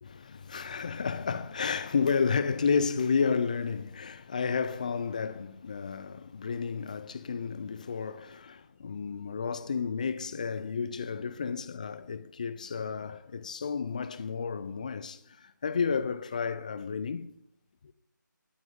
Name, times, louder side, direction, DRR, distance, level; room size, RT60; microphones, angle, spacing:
voice 1, 0.0-17.3 17.8-17.9, left 5 dB, 25° left, 0.4 m, -31 dB
12.5 x 7.6 x 5.2 m
figure-of-eight pair, 160°, 11 cm